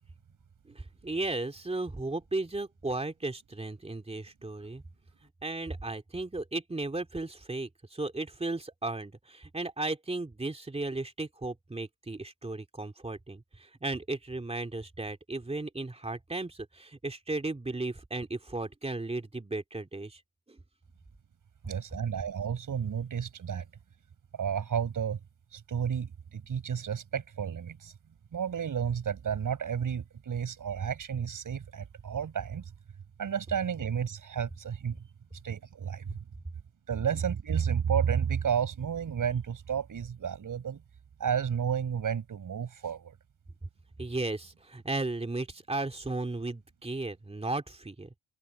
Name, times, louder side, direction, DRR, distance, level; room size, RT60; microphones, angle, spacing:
voice 1, 0.6-4.8 5.4-20.2 20.5-20.6 44.0-48.2, right 2 dB, 15° right, 2.7 m, -35 dB
voice 2, 21.6-23.6 24.3-25.2 25.5-27.9 28.3-32.6 33.2-35.0 35.4-36.2 36.9-40.8 41.2-43.1, right 7 dB, 50° right, 6.6 m, -31 dB
cardioid pair, 105°, 42 cm